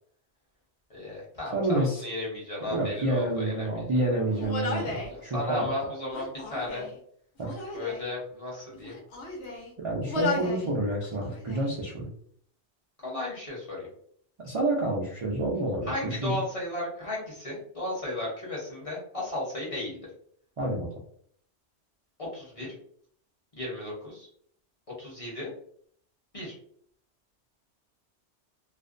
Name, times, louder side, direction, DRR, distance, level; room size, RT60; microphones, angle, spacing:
voice 1, 0.9-3.9 4.7-6.9 7.7-9.0 13.0-13.9 15.9-20.0 22.3-22.7 23.6-24.3 25.0-25.5 26.3-26.5, left 1 dB, 35° left, -5 dB, 0.8 m, -35 dB
voice 2, 1.5-2.0 2.7-5.7 7.4-7.5 9.8-12.1 14.4-16.3 20.6-20.9, right 1 dB, 55° right, -3 dB, 0.3 m, -28 dB
Human voice, 4.3-5.1 6.0-7.0 7.4-8.1 8.7-9.7 10.1-10.7 11.0-11.7, left 3 dB, 70° left, 1.0 m, -34 dB
2.5 x 2.1 x 2.4 m, 0.63 s
omnidirectional pair, 1.2 m